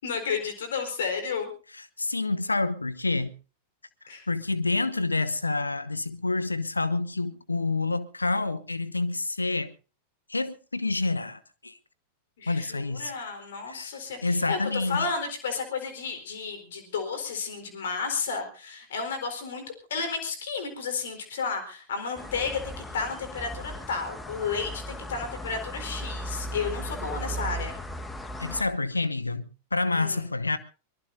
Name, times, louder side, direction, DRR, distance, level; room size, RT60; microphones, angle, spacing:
voice 1, 0.0-1.5 4.1-4.3 12.4-19.6 19.9-27.8 29.9-30.2, left 5 dB, 60° left, 4.2 m, -32 dB
voice 2, 2.0-3.3 4.3-9.7 10.3-11.8 12.5-13.1 13.7-13.9 14.2-15.1 28.4-30.6, left 3 dB, 80° left, 0.9 m, -28 dB
sound 1, 22.2-28.6, equal, 10° left, 1.4 m, -37 dB
23.0 x 21.5 x 2.7 m
figure-of-eight pair, 90°, 0 cm